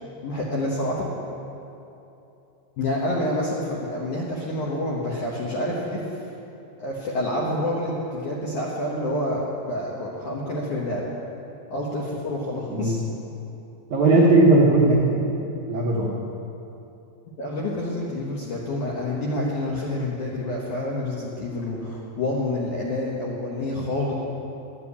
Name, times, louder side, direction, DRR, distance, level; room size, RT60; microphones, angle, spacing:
voice 1, 0.2-1.1 2.8-6.1 6.8-11.1 11.7-13.0 17.4-24.1, left 1 dB, 70° left, -4 dB, 1.9 m, -28 dB
voice 2, 13.9-15.2 15.7-16.1, right 2 dB, 70° right, -5 dB, 1.8 m, -17 dB
12.0 x 7.6 x 8.4 m, 2.9 s
omnidirectional pair, 5.1 m